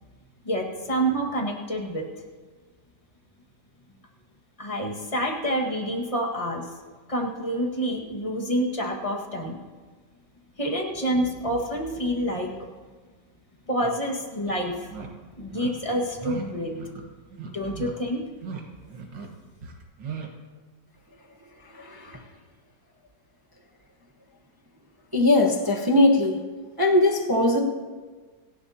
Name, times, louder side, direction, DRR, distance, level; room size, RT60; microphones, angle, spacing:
voice 1, 0.4-2.1 4.6-6.7 7.1-9.6 10.6-12.7 13.7-14.9 15.4-16.7 17.4-18.2, equal, 20° left, 0 dB, 1.6 m, -28 dB
sound 1, 13.8-13.9 14.4-14.6 14.9-15.1 15.5-15.7 16.2-16.4 16.7-17.0 17.3-17.9 18.3-18.6 18.9-19.3 19.6-20.3, right 6 dB, 70° right, 2.2 m, -38 dB
voice 2, 21.8-22.2 25.1-26.4 26.8-27.6, left 2 dB, 15° right, 0 dB, 0.7 m, -20 dB
27.0 x 11.5 x 2.9 m, 1.4 s
omnidirectional pair, 2.1 m